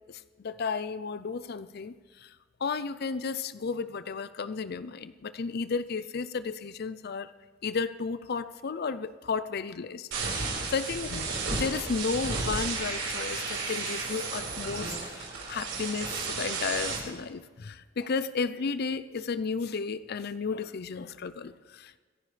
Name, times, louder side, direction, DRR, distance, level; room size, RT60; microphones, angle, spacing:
voice 1, 0.1-1.9 2.2-2.3 2.6-7.3 7.6-22.0, left 5 dB, 55° left, 14 dB, 0.5 m, -33 dB
sound 1, 10.1-17.0, right 4 dB, 75° right, 4.9 m, -33 dB
25.5 x 10.5 x 3.3 m, 1.4 s
head